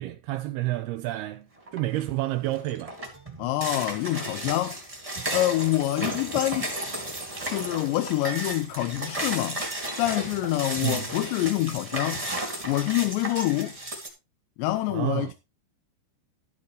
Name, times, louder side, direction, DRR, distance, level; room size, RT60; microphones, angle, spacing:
voice 1, 0.0-1.5 1.7-3.0 6.0-6.2 10.8-11.1 14.9-15.3, right 16 dB, 80° right, 2.4 m, -29 dB
sound 1, 1.7-2.0 2.4-14.1, right 1 dB, 10° right, 1.7 m, -34 dB
voice 2, 3.4-4.8 5.3-6.7 7.5-9.6 10.0-12.3 12.6-13.8 14.6-15.3, left 15 dB, 85° left, 2.9 m, -26 dB
13.0 x 8.8 x 3.2 m
omnidirectional pair, 5.1 m